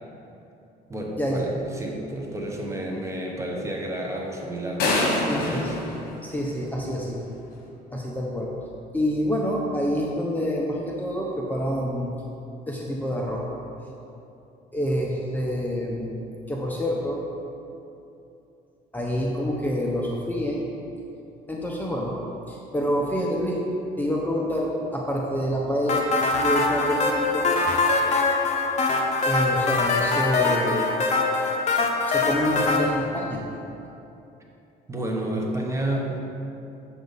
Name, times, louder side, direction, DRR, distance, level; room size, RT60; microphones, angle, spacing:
voice 1, 0.9-5.8 34.9-36.2, right 1 dB, 15° right, -1 dB, 1.2 m, -30 dB
sound 1, 4.8-6.9, left 2 dB, 65° left, 1.5 m, -26 dB
voice 2, 5.3-5.8 6.2-7.2 7.9-8.5 8.9-12.1 12.7-13.4 14.7-17.2 18.9-20.6 21.5-22.2 22.5-23.6 24.0-26.1 26.4-27.5 29.2-30.8 32.1-33.4, equal, 10° left, -3 dB, 0.9 m, -27 dB
sound 2, 25.9-32.8, left 3 dB, 40° left, 1.0 m, -23 dB
7.8 x 6.9 x 4.0 m, 2.8 s
cardioid pair, 110°, 17 cm